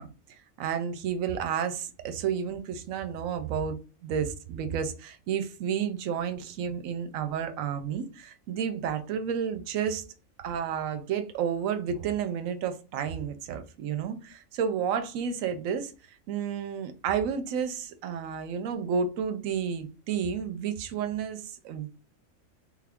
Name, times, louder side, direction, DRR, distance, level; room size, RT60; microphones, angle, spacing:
voice 1, 0.0-10.0 10.4-15.9 16.3-21.9, right 7 dB, 75° right, 1.0 m, -31 dB
3.4 x 2.4 x 3.4 m
omnidirectional pair, 1.4 m